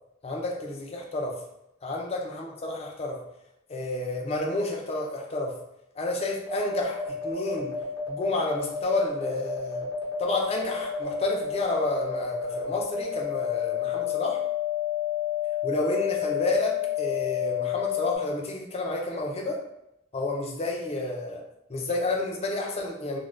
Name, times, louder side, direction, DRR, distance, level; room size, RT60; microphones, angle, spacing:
voice 1, 0.2-1.4 1.8-3.2 3.7-5.6 6.0-7.8 8.1-9.9 10.2-14.4 15.6-19.6 20.1-21.4 21.7-23.2, left 2 dB, 30° left, 0 dB, 0.4 m, -30 dB
sound 1, 6.5-18.2, left 9 dB, 55° left, 0.9 m, -30 dB
2.5 x 2.1 x 3.1 m, 0.85 s
head